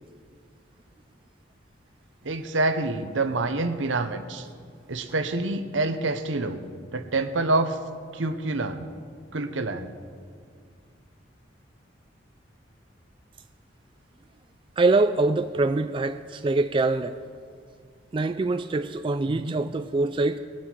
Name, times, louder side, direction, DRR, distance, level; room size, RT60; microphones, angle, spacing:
voice 1, 2.2-4.5 4.9-6.6 6.9-7.8 8.1-8.9 9.3-9.9 19.3-19.6, right 2 dB, 75° right, 9 dB, 0.9 m, -27 dB
voice 2, 14.8-17.2 18.1-20.4, right 3 dB, 25° right, 9 dB, 0.3 m, -24 dB
20.5 x 8.6 x 4.5 m, 2.1 s
head